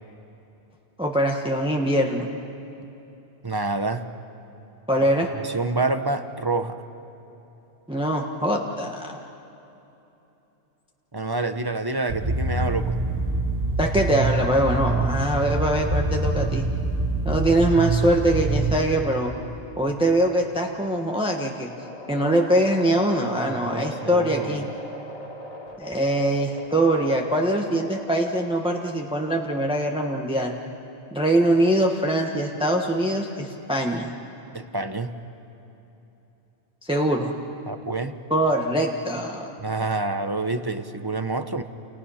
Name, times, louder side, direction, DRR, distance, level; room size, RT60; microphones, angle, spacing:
voice 1, 1.0-2.3 4.9-5.3 7.9-9.2 13.8-16.7 17.2-19.3 19.8-21.7 22.1-24.7 25.8-30.6 31.1-34.1 36.8-37.3 38.3-39.5, right 1 dB, 5° right, 0 dB, 1.4 m, -23 dB
voice 2, 3.4-4.0 5.4-6.8 11.1-13.0 23.5-24.7 34.5-35.1 37.7-38.1 39.6-41.6, right 3 dB, 20° right, 9 dB, 0.9 m, -27 dB
sound 1, 12.1-18.8, right 2 dB, 90° right, 3.2 m, -25 dB
sound 2, 21.1-28.8, left 1 dB, 35° left, 2.7 m, -40 dB
30.0 x 29.5 x 5.8 m, 3.0 s
omnidirectional pair, 1.2 m